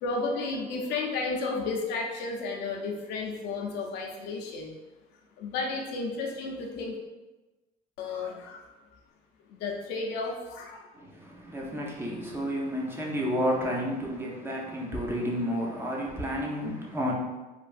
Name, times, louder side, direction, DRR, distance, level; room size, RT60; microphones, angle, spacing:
voice 1, 0.0-4.7 5.4-7.0 8.0-8.7 9.5-10.9, left 3 dB, 85° left, 1 dB, 0.5 m, -32 dB
voice 2, 10.9-17.1, equal, 15° right, -2 dB, 0.6 m, -31 dB
3.1 x 2.3 x 2.5 m, 1.1 s
cardioid pair, 110°, 17 cm